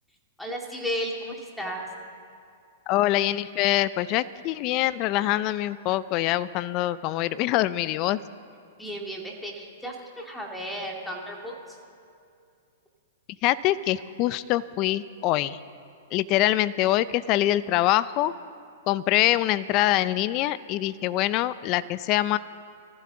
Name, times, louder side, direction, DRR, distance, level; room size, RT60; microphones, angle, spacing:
voice 1, 0.4-1.9 8.8-11.8, equal, 5° left, -1 dB, 2.2 m, -34 dB
voice 2, 2.9-8.2 13.4-15.6 16.1-18.3 18.9-22.4, left 14 dB, 40° left, 16 dB, 0.5 m, -24 dB
19.5 x 15.0 x 3.9 m, 2.4 s
hypercardioid pair, 135°, 0 cm